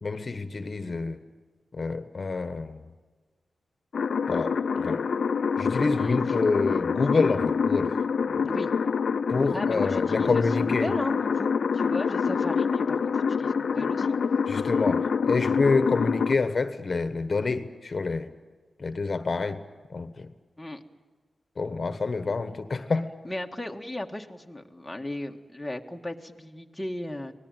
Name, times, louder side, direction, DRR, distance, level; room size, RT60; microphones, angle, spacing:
voice 1, 0.0-1.2 1.7-2.8 4.3-5.0 5.6-7.9 8.3-8.4 9.3-10.9 14.5-18.3 18.8-19.6 19.9-20.3 21.6-23.1, left 4 dB, 45° left, 10 dB, 1.3 m, -27 dB
sound 1, 3.9-16.4, left 6 dB, 75° left, 0.7 m, -26 dB
voice 2, 9.5-14.2 20.6-20.8 23.2-27.3, left 1 dB, 5° left, 2 dB, 1.8 m, -36 dB
25.5 x 19.0 x 9.2 m, 1.4 s
wide cardioid pair, 110°, 0 cm